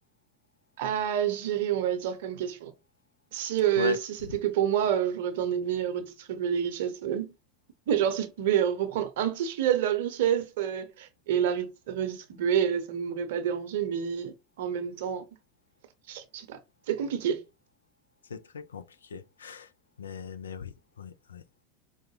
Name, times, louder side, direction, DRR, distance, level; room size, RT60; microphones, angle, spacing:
voice 1, 0.8-2.7 3.3-4.0 4.3-7.3 7.9-15.2 16.1-16.6 16.9-17.4, right 9 dB, 65° right, 0.7 m, -28 dB
voice 2, 18.3-19.7 20.0-21.6, left 6 dB, 80° left, 0.3 m, -38 dB
4.7 x 2.1 x 3.0 m
figure-of-eight pair, 75°, 0 cm